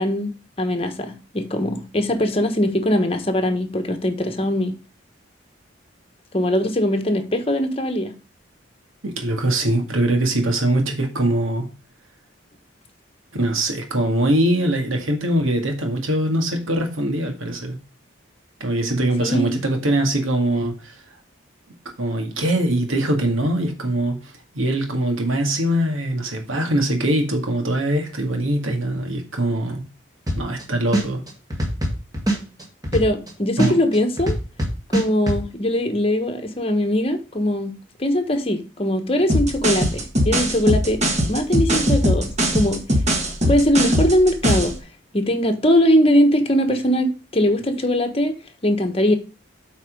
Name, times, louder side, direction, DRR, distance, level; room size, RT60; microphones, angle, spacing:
voice 1, 0.0-4.7 6.3-8.1 19.2-19.5 32.9-34.4 34.9-41.0 41.3-42.8 43.5-44.7 45.1-48.3 48.6-49.2, equal, 30° left, 1.1 m, -21 dB
voice 2, 9.0-11.7 13.3-17.8 18.6-21.0 22.0-29.8 30.4-31.2 33.6-33.8, right 1 dB, 80° right, 1.9 m, -22 dB
sound 1, 30.3-30.6 30.9-33.3 33.6-35.4, right 1 dB, 20° right, 1.7 m, -22 dB
sound 2, 39.3-44.8, equal, 35° right, 1.5 m, -20 dB
8.3 x 4.3 x 5.1 m
head